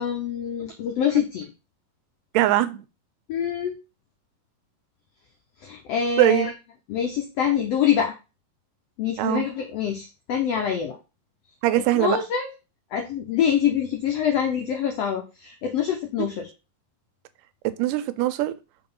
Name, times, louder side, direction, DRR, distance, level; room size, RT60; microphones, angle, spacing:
voice 1, 0.0-1.4 3.3-3.7 5.6-6.5 6.9-8.1 9.0-11.0 11.9-12.5 12.9-16.5, left 8 dB, 85° left, 1.4 m, -25 dB
voice 2, 2.3-2.8 6.2-6.5 9.2-9.5 11.6-12.2 16.2-16.3 17.8-18.5, right 15 dB, 85° right, 2.1 m, -21 dB
4.8 x 3.9 x 5.3 m
omnidirectional pair, 3.8 m